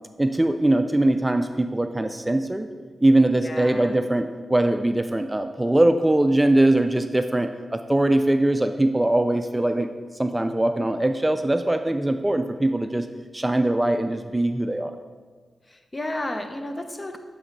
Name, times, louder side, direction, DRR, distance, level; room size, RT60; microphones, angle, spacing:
voice 1, 0.2-2.7 3.0-9.9 10.2-13.1 13.3-14.9, right 1 dB, 15° right, 8 dB, 0.4 m, -21 dB
voice 2, 3.3-4.0 15.7-17.2, left 1 dB, 35° left, 6 dB, 0.8 m, -32 dB
7.8 x 4.1 x 3.9 m, 1.5 s
supercardioid pair, 40°, 0 cm